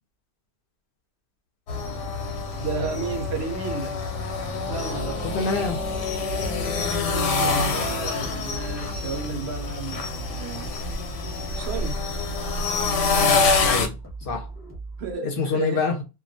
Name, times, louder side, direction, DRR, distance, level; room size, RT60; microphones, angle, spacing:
sound 1, 1.7-13.9, left 4 dB, 90° left, 0.9 m, -26 dB
voice 1, 2.6-4.0 4.7-5.3 7.1-10.7 11.5-12.1 15.0-15.8, right 4 dB, 70° right, 0.8 m, -32 dB
sound 2, 4.8-15.2, right 3 dB, 15° left, 0.8 m, -39 dB
voice 2, 5.2-5.8 13.6-14.5 15.2-16.0, left 4 dB, 60° left, 0.7 m, -26 dB
2.3 x 2.1 x 2.6 m
omnidirectional pair, 1.2 m